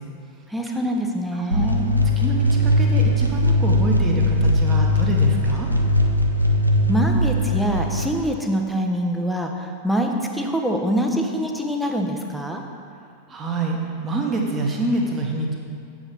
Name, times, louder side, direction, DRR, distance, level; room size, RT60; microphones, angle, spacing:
voice 1, 0.5-1.9 6.9-12.6, equal, ahead, 2 dB, 0.8 m, -24 dB
voice 2, 1.4-1.7 2.2-5.7 13.3-13.8 14.0-15.5, right 2 dB, 20° right, 0 dB, 1.2 m, -26 dB
sound 1, 1.5-8.1, left 1 dB, 90° left, 0.5 m, -19 dB
7.7 x 4.9 x 5.6 m, 2.4 s
figure-of-eight pair, 90°, 0 cm